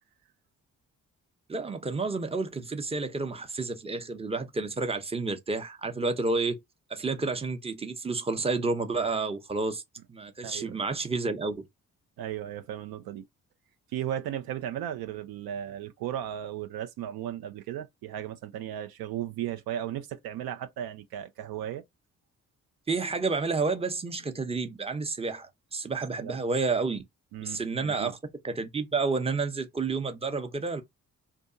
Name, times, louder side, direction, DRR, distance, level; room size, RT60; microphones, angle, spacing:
voice 1, 1.5-6.6 6.9-9.8 10.1-11.6 22.9-27.0 27.4-28.1 28.4-30.8, right 3 dB, 15° right, 0.7 m, -30 dB
voice 2, 10.4-10.8 12.2-13.2 13.9-21.8 26.2-26.4 27.3-28.1, right 11 dB, 70° right, 0.5 m, -36 dB
2.6 x 2.3 x 2.5 m
hypercardioid pair, 40°, 38 cm